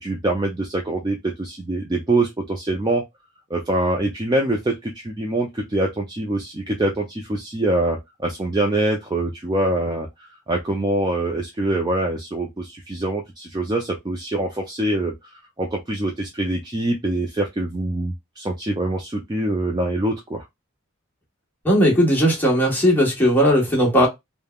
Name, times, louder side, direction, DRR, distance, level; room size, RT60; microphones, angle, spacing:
voice 1, 0.0-3.0 3.5-20.5, right 2 dB, 20° right, 0.4 m, -24 dB
voice 2, 21.6-24.1, equal, 10° left, 1.1 m, -17 dB
3.3 x 2.1 x 2.2 m
head